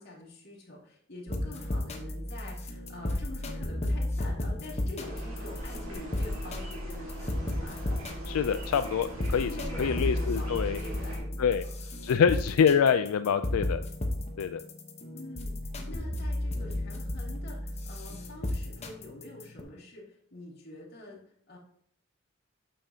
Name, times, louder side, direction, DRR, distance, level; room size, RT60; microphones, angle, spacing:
voice 1, 0.0-7.8 9.3-11.5 15.1-21.2 21.5-21.6, left 2 dB, 50° left, -4 dB, 2.5 m, -46 dB
sound 1, 1.3-19.6, left 1 dB, 30° left, 0.9 m, -34 dB
sound 2, 5.0-11.2, right 1 dB, 75° right, 2.2 m, -42 dB
voice 2, 8.3-9.5 9.8-10.8 11.4-11.6 12.0-13.8 14.4-14.6, left 7 dB, 90° left, 10 dB, 0.4 m, -25 dB
9.0 x 6.9 x 2.8 m, 0.63 s
head